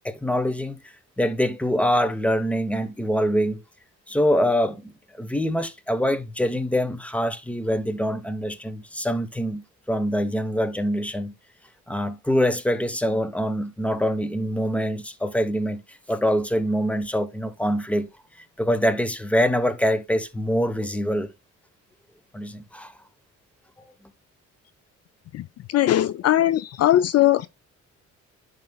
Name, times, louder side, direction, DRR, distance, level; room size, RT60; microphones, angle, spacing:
voice 1, 0.0-3.6 4.1-4.9 5.2-11.3 11.9-18.1 18.6-21.3 22.3-22.9, equal, 5° left, 1.0 m, -24 dB
voice 2, 25.7-27.5, left 13 dB, 55° left, 0.4 m, -19 dB
10.5 x 5.3 x 2.3 m
cardioid pair, 90°, 30 cm